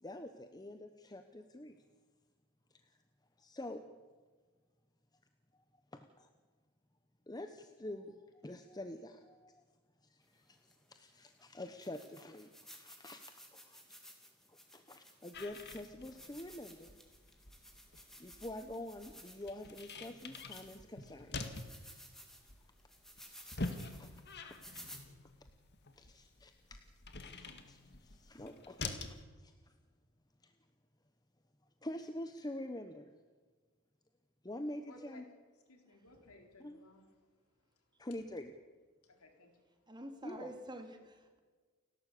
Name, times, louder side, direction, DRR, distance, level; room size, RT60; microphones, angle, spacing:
voice 1, 0.0-1.8 3.4-3.8 5.9-6.3 7.3-9.6 10.0-13.8 14.5-17.0 18.2-21.6 23.5-23.6 23.9-24.6 24.8-25.0 26.0-26.8 27.2-29.7 30.4-30.5 31.8-33.2 34.4-35.2 36.6-36.8 38.0-38.5 40.2-40.5, left 1 dB, 20° left, 7 dB, 1.0 m, -47 dB
sound 1, 10.7-10.8 11.4-11.5 11.8-20.9 21.4-25.0, equal, ahead, 3.1 m, -56 dB
sound 2, 15.3-29.2, left 3 dB, 50° left, 2.0 m, -47 dB
voice 2, 34.9-35.3 35.7-37.4 37.8-38.1 39.0-39.9, left 3 dB, 75° left, 4 dB, 4.0 m, -60 dB
voice 3, 39.9-41.4, right 1 dB, 20° right, 4 dB, 2.8 m, -48 dB
29.5 x 12.0 x 8.5 m, 1.4 s
head